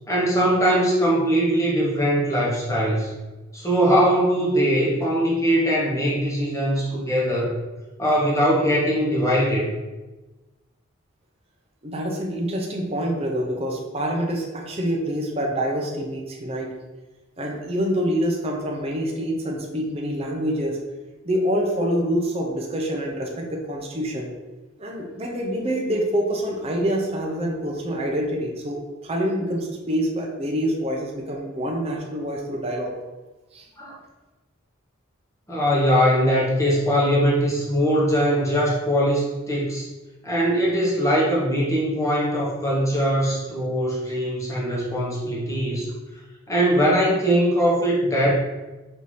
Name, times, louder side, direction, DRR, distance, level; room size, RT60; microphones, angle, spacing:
voice 1, 0.1-3.1 3.5-7.6 8.0-9.7 33.8-34.0 35.5-39.9 40.2-45.9 46.5-48.3, equal, 15° left, -5 dB, 1.0 m, -21 dB
voice 2, 11.8-16.7 17.4-20.8 21.2-24.3 24.8-32.9 33.5-33.7, equal, 30° right, 0 dB, 0.6 m, -26 dB
5.4 x 2.7 x 3.2 m, 1.1 s
head